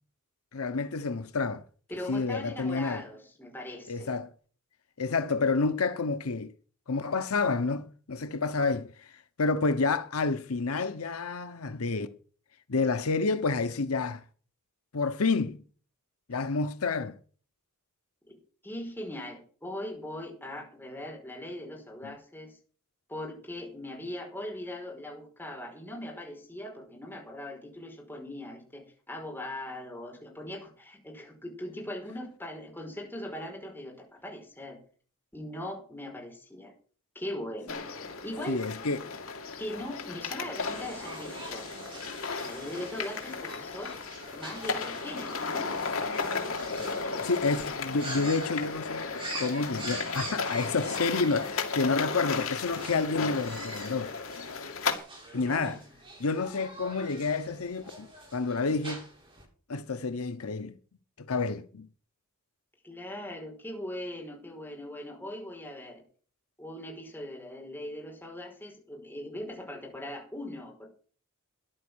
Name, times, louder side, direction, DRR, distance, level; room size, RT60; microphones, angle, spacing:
voice 1, 0.5-1.6 2.1-3.0 3.9-4.3 5.0-6.5 6.9-9.1 9.4-12.1 12.7-14.2 14.9-15.6 16.3-17.2 22.0-22.1 38.5-39.0 47.2-49.1 49.3-54.1 55.3-55.8 56.2-59.1 59.7-60.7 61.2-61.9, left 4 dB, 90° left, 0.9 m, -29 dB
voice 2, 1.9-4.1 18.6-22.6 23.1-34.8 35.3-36.7 37.1-37.8 38.2-38.6 39.6-41.7 42.4-44.0 44.3-45.7 55.3-55.8 62.8-66.0 66.6-70.9, left 1 dB, 10° left, 5.2 m, -40 dB
sound 1, 37.7-55.0, left 4 dB, 70° left, 2.5 m, -35 dB
sound 2, 40.6-59.4, right 2 dB, 25° right, 7.9 m, -45 dB
13.5 x 11.0 x 6.3 m
head